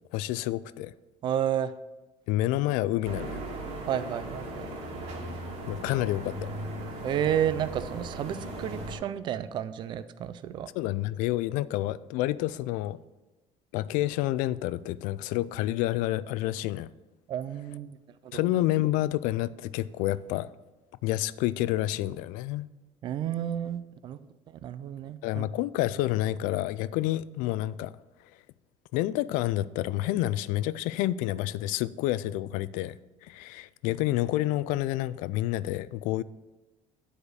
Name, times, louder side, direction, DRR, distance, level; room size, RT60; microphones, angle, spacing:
voice 1, 0.1-0.9 2.3-3.4 5.7-6.5 10.8-13.0 13.7-16.9 18.3-20.5 21.0-22.7 25.2-27.9 28.9-33.0 33.2-36.2, left 15 dB, 85° left, 0.4 m, -29 dB
voice 2, 1.2-1.7 3.9-4.7 7.0-10.7 17.3-18.0 18.2-18.4 23.0-24.2 24.5-25.5, right 10 dB, 35° right, 0.4 m, -31 dB
sound 1, 3.0-9.0, right 1 dB, 60° right, 2.3 m, -37 dB
9.7 x 5.0 x 6.4 m
cardioid pair, 180°, 13 cm